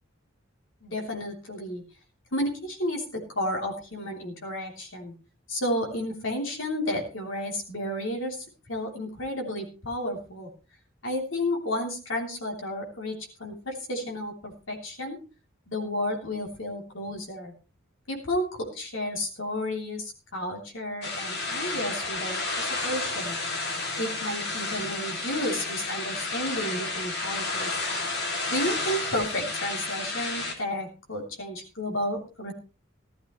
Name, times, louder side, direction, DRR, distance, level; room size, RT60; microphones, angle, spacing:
voice 1, 0.8-1.8 2.3-5.1 5.5-10.5 11.0-15.2 15.7-17.5 18.1-23.4 24.0-27.7 28.5-32.5, left 1 dB, 70° left, 2 dB, 3.2 m, -32 dB
sound 1, 21.0-30.5, left 3 dB, 55° left, 2.6 m, -31 dB
15.5 x 12.5 x 3.1 m, 0.34 s
head